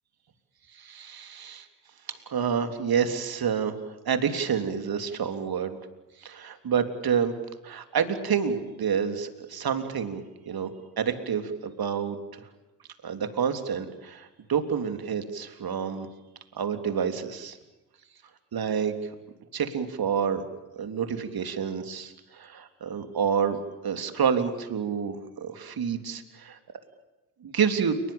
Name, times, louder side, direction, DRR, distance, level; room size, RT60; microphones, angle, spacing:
voice 1, 0.7-1.7 2.1-5.8 6.2-7.3 7.6-10.7 11.0-12.5 13.0-16.1 16.6-17.6 18.5-19.2 19.5-20.4 20.8-23.6 23.8-26.6 27.4-28.0, right 7 dB, 45° right, 8 dB, 3.5 m, -28 dB
29.0 x 21.0 x 8.7 m, 1.1 s
hypercardioid pair, 50°, 49 cm